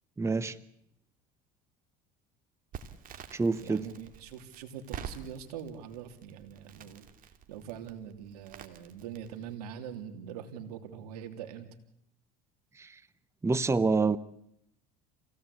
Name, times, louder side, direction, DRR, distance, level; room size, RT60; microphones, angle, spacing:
voice 1, 0.2-0.6 3.3-3.9 12.8-13.0 13.4-14.2, right 4 dB, 15° right, 15 dB, 0.9 m, -27 dB
Crackle, 2.7-9.5, right 7 dB, 45° right, 2.8 m, -47 dB
voice 2, 3.6-7.1 7.5-11.7, right 8 dB, 85° right, 6 dB, 3.2 m, -43 dB
27.5 x 17.5 x 8.5 m, 0.79 s
supercardioid pair, 90°, 19 cm